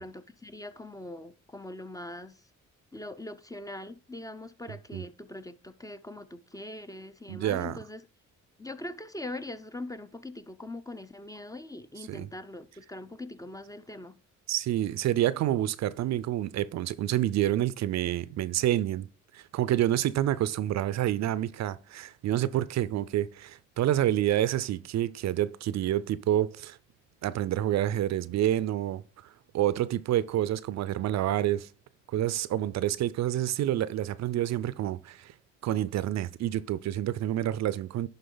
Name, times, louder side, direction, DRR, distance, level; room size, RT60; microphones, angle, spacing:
voice 1, 0.0-2.4 2.9-8.0 8.6-14.2, left 1 dB, 10° left, 0.5 m, -42 dB
voice 2, 7.3-7.8 12.1-12.3 14.5-19.1 19.3-26.8 27.2-31.7 32.1-35.3 35.6-38.1, right 12 dB, 60° right, 0.5 m, -28 dB
11.0 x 3.7 x 3.9 m
cardioid pair, 90°, 30 cm